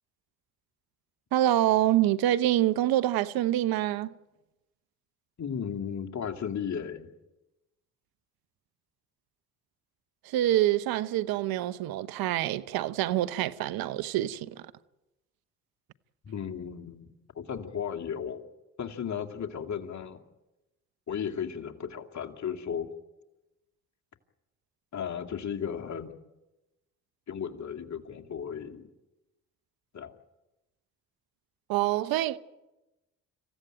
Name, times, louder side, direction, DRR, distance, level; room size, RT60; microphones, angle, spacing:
voice 1, 1.3-4.1 10.2-14.7 31.7-32.4, right 13 dB, 75° right, 0.9 m, -26 dB
voice 2, 5.4-7.1 16.2-17.1 17.3-18.5 18.8-20.2 21.1-22.9 24.9-26.2 27.3-28.9 29.9-30.1, left 7 dB, 50° left, 2.4 m, -35 dB
26.5 x 15.5 x 8.9 m
hypercardioid pair, 50°, 36 cm